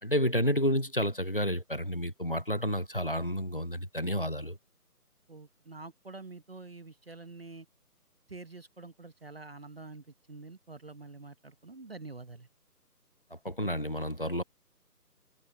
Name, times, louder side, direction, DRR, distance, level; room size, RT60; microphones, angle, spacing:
voice 1, 0.0-4.6 13.3-14.4, equal, 35° left, 0.7 m, -30 dB
voice 2, 5.3-7.7 8.3-12.5, right 3 dB, 40° right, 1.4 m, -47 dB
figure-of-eight pair, 175°, 47 cm